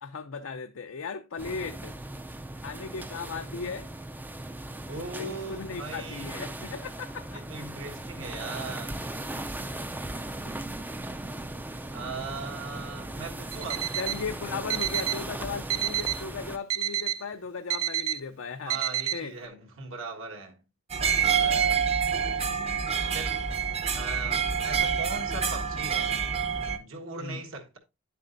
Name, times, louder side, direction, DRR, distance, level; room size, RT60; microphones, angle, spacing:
voice 1, 0.0-1.9 2.6-3.9 5.2-7.4 10.4-10.7 14.0-18.8 19.1-19.3 21.4-21.8 27.2-27.4, left 5 dB, 70° left, 0.5 m, -37 dB
sound 1, 1.4-16.6, right 1 dB, 10° right, 0.4 m, -38 dB
voice 2, 4.9-6.5 7.3-9.0 11.9-13.9 18.7-20.6 23.1-23.5 23.9-26.2 26.8-27.8, right 3 dB, 70° right, 1.5 m, -39 dB
Alarm, 13.5-14.2 14.7-15.2 15.7-16.2 16.7-17.2 17.7-18.2 18.7-19.2, right 11 dB, 85° right, 0.6 m, -29 dB
sound 2, 20.9-26.8, right 7 dB, 30° right, 0.8 m, -27 dB
9.9 x 7.5 x 2.6 m
head